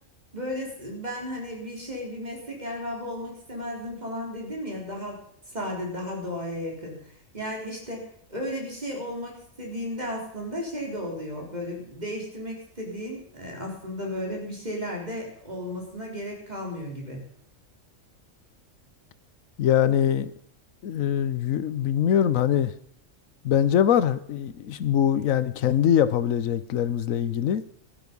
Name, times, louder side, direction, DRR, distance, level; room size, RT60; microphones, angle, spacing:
voice 1, 0.3-5.2 5.5-7.0 7.3-17.3, equal, 30° right, -1 dB, 4.2 m, -34 dB
voice 2, 19.6-20.3 20.8-22.7 23.4-27.6, left 9 dB, 85° left, 15 dB, 1.2 m, -23 dB
15.5 x 12.0 x 5.4 m, 0.64 s
omnidirectional pair, 1.4 m